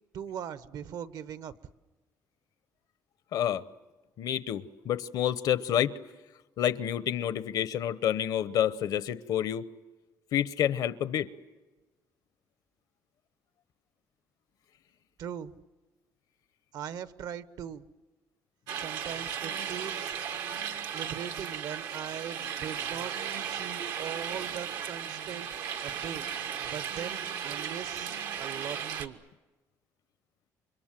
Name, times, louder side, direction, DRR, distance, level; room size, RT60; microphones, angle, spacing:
voice 1, 0.1-1.5 15.2-15.5 16.7-17.8 18.7-20.1 20.9-23.1 23.4-25.5 25.8-26.2 26.7-29.2, right 8 dB, 70° right, 1.0 m, -40 dB
voice 2, 3.3-3.6 4.2-5.9 6.6-9.6 10.3-11.3, left 10 dB, 70° left, 0.9 m, -28 dB
sound 1, 18.7-29.1, right 8 dB, 90° right, 1.5 m, -36 dB
29.0 x 25.0 x 7.6 m
cardioid pair, 105°, 7 cm